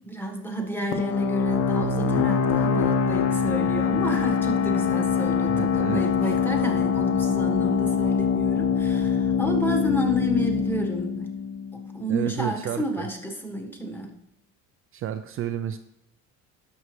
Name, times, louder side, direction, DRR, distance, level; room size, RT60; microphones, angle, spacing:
voice 1, 0.0-11.4 11.7-14.1, equal, 5° left, 2 dB, 1.4 m, -30 dB
sound 1, 0.9-12.3, left 6 dB, 50° left, 0.8 m, -24 dB
voice 2, 5.5-6.4 12.1-13.1 14.9-15.8, right 10 dB, 45° right, 8 dB, 0.5 m, -31 dB
12.5 x 6.4 x 3.2 m, 0.81 s
cardioid pair, 130°, 32 cm